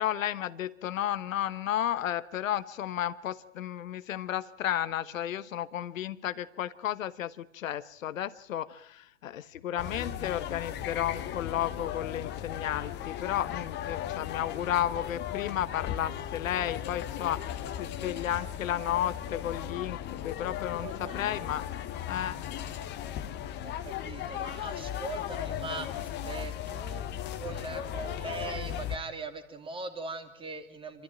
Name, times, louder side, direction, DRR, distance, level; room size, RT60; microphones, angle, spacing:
voice 1, 0.0-21.7 22.1-22.5, left 11 dB, 75° left, 14 dB, 1.2 m, -33 dB
sound 1, 9.8-29.0, left 10 dB, 25° left, 1.2 m, -37 dB
voice 2, 20.8-22.1 23.6-31.0, right 3 dB, 15° right, 7 dB, 2.5 m, -41 dB
27.0 x 14.0 x 8.9 m, 0.70 s
hypercardioid pair, 125°, 40 cm